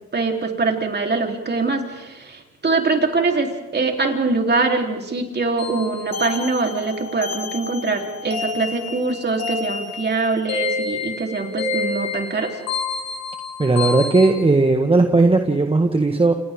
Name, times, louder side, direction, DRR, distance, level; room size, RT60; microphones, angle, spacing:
voice 1, 0.1-12.5, right 3 dB, 35° right, 2 dB, 3.8 m, -23 dB
sound 1, 5.6-14.3, left 4 dB, 60° left, 3.5 m, -29 dB
voice 2, 13.6-16.3, right 3 dB, 20° right, 4 dB, 1.6 m, -16 dB
29.0 x 27.5 x 3.8 m, 1.1 s
cardioid pair, 90°, 30 cm